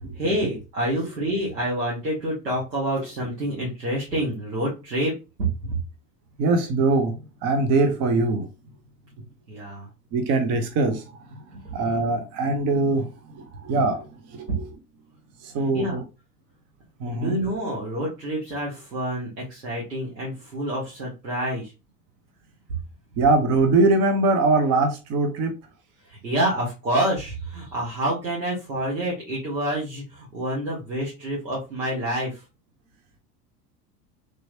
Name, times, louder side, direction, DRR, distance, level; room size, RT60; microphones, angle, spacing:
voice 1, 0.1-5.2 5.7-5.8 9.5-9.9 15.7-16.0 17.1-21.7 26.0-32.4, right 1 dB, 80° right, 1.3 m, -28 dB
voice 2, 6.4-8.5 10.1-11.0 11.5-14.7 15.4-16.0 17.0-17.4 23.2-25.6, right 3 dB, 30° right, 0.6 m, -22 dB
3.4 x 2.9 x 2.7 m
figure-of-eight pair, 80°, 49 cm